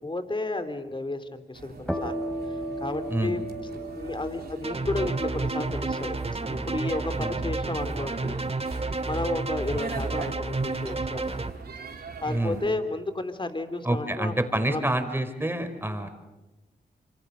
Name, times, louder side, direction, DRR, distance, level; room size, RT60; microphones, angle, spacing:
voice 1, 0.0-2.1 2.8-3.4 3.7-6.2 6.5-8.4 9.0-11.3 12.2-14.4 14.7-14.9, left 2 dB, 25° left, 9 dB, 3.2 m, -32 dB
sound 1, 1.5-12.7, right 4 dB, 65° right, 3.3 m, -43 dB
sound 2, 1.9-9.3, right 1 dB, 5° left, 4.8 m, -37 dB
sound 3, 4.6-11.5, right 3 dB, 35° right, 1.9 m, -30 dB
voice 2, 12.2-12.6 13.8-16.1, right 1 dB, 10° right, 7 dB, 4.7 m, -27 dB
27.5 x 25.0 x 6.7 m, 1.1 s
cardioid pair, 50°, 18 cm